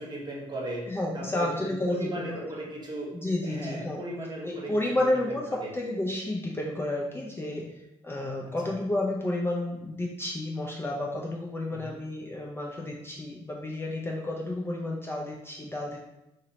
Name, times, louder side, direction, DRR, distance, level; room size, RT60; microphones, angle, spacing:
voice 1, 0.0-0.8 1.1-3.1 3.4-4.7 5.0-5.7 8.4-8.7 11.7-12.0, right 1 dB, 30° right, -3 dB, 0.9 m, -37 dB
voice 2, 0.9-2.5 3.1-4.0 4.4-5.4 5.7-7.7 8.0-16.0, left 1 dB, 15° left, -2 dB, 0.4 m, -31 dB
2.8 x 2.0 x 2.7 m, 0.91 s
hypercardioid pair, 50°, 15 cm